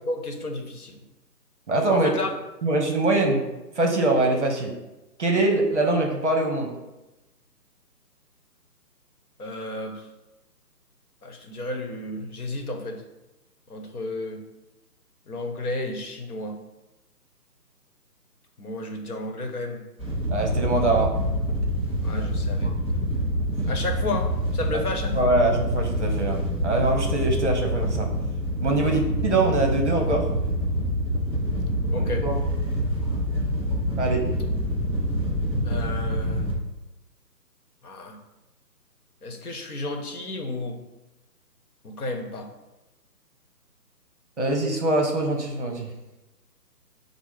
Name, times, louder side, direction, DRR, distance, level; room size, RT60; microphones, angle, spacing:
voice 1, 0.1-1.0 1.9-2.3 9.4-10.1 11.2-13.0 13.7-14.4 15.3-16.6 18.6-19.8 22.0-22.7 23.0-23.1 23.7-25.4 28.8-29.0 31.9-32.3 35.6-36.4 37.8-38.2 39.2-40.8 41.8-42.5, left 2 dB, 65° left, 3 dB, 0.9 m, -32 dB
voice 2, 1.7-2.1 2.6-3.4 3.8-4.7 5.2-6.7 20.3-21.1 22.1-22.2 22.6-22.7 25.1-28.1 28.6-30.3 31.9-32.4 34.0-34.3 44.4-45.9, right 2 dB, 45° right, 2 dB, 0.7 m, -23 dB
Wind / Boat Water vehicle, 20.0-36.5, equal, 20° left, 0.9 m, -26 dB
5.5 x 2.0 x 4.8 m, 1.0 s
hypercardioid pair, 165°, 49 cm